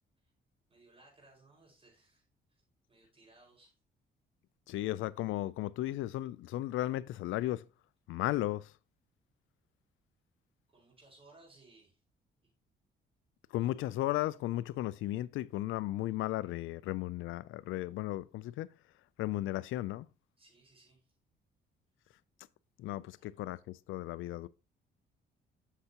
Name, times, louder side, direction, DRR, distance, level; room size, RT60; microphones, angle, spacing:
voice 1, 0.7-2.2 2.9-3.7 10.7-12.0 12.4-12.5 20.4-21.1 23.2-23.4, right 2 dB, 30° right, 5.0 m, -62 dB
voice 2, 4.7-7.7 8.1-8.7 13.5-18.7 19.2-20.1 22.8-24.5, left 15 dB, 85° left, 0.4 m, -35 dB
8.1 x 6.7 x 2.9 m
cardioid pair, 90°, 20 cm